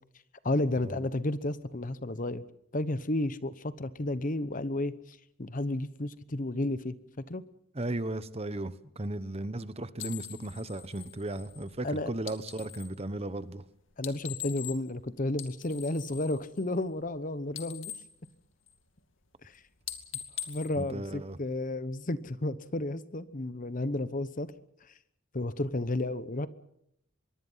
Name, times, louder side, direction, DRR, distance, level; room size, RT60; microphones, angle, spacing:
voice 1, 0.4-2.5 2.7-7.4 11.8-12.1 14.0-17.9 20.5-24.5 25.3-26.5, left 1 dB, 40° left, 14 dB, 1.0 m, -32 dB
voice 2, 7.7-13.6 20.8-21.4, right 2 dB, 30° right, 14 dB, 1.0 m, -36 dB
sound 1, 10.0-13.0 13.9-15.0 15.3-17.2 17.4-19.0 19.3-19.6 19.8-21.7, left 11 dB, 70° left, 2.5 m, -43 dB
25.0 x 22.0 x 5.7 m, 0.75 s
head